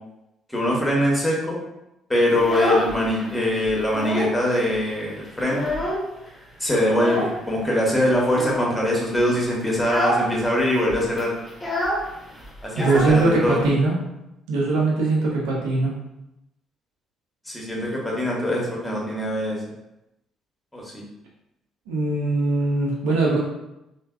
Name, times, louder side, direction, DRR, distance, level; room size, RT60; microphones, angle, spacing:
voice 1, 0.5-1.6 2.1-5.7 6.6-11.3 12.6-13.6 17.5-19.6 20.7-21.0, left 1 dB, 10° left, -3 dB, 1.0 m, -23 dB
Child speech kid speaking, 2.3-3.3 3.7-4.4 4.7-4.8 5.2-6.3 6.9-7.4 8.3-8.8 9.2-9.4 9.8-10.3 10.6-10.7 10.9-13.7, equal, 30° left, 0.7 m, -27 dB
voice 2, 12.7-14.0 14.5-16.0 21.9-23.4, right 3 dB, 70° right, -3 dB, 0.5 m, -21 dB
3.2 x 2.1 x 2.3 m, 0.88 s
figure-of-eight pair, 50°, 0 cm